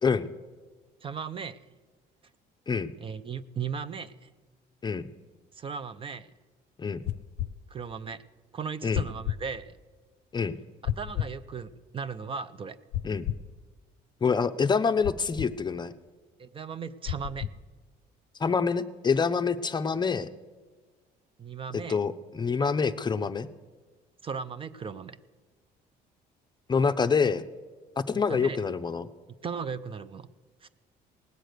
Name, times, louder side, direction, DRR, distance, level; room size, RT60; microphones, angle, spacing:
voice 1, 1.0-1.6 3.0-4.3 5.5-6.3 7.7-8.2 8.5-9.7 10.8-12.8 16.4-17.5 21.4-22.0 24.2-25.2 28.1-28.6 29.4-30.3 30.6-30.7, right 6 dB, 30° right, 13 dB, 0.5 m, -37 dB
sound 1, 7.0-7.5 8.9-9.4 10.8-11.3 12.9-13.5 15.0-15.5 17.0-17.6, left 11 dB, 85° left, 0.6 m, -32 dB
voice 2, 14.2-15.9 18.4-20.3 21.7-23.5 26.7-27.4 28.0-29.1, left 5 dB, 25° left, 10 dB, 0.6 m, -26 dB
19.0 x 7.8 x 6.6 m, 1.4 s
cardioid pair, 110°, 17 cm